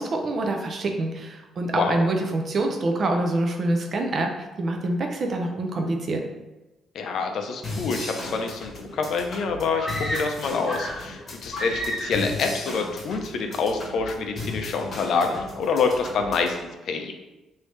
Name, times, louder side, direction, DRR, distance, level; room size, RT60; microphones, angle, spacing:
voice 1, 0.0-6.2, right 2 dB, 40° right, 3 dB, 0.5 m, -26 dB
voice 2, 1.7-2.0 6.9-16.6 16.8-17.1, left 4 dB, 65° left, 4 dB, 0.4 m, -26 dB
sound 1, 7.6-16.6, left 2 dB, 40° left, 1.0 m, -37 dB
sound 2, 9.8-11.1 11.5-12.3, equal, 15° left, 1.3 m, -31 dB
3.4 x 2.7 x 3.1 m, 1.1 s
cardioid pair, 130°, 0 cm